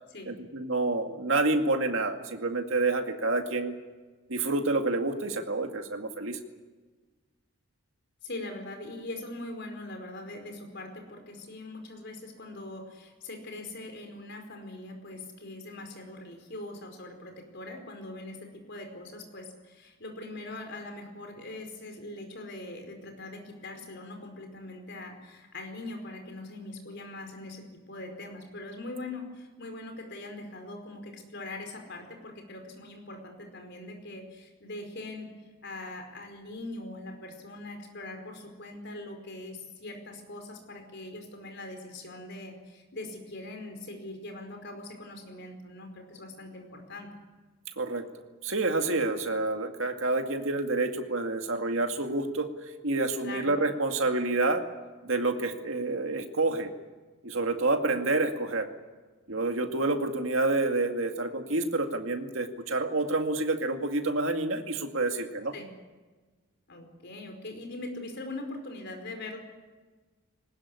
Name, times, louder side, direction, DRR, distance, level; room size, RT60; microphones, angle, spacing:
voice 1, 0.3-3.7 4.3-6.4 47.8-48.1 48.4-52.5 52.8-54.6 55.0-56.7 57.2-58.7 59.3-65.5, right 2 dB, 60° right, 5 dB, 2.2 m, -28 dB
voice 2, 8.2-35.3 35.6-47.1 53.2-53.5 65.5-65.7 66.7-69.4, left 2 dB, 50° left, 4 dB, 4.9 m, -42 dB
21.0 x 19.5 x 9.8 m, 1.3 s
head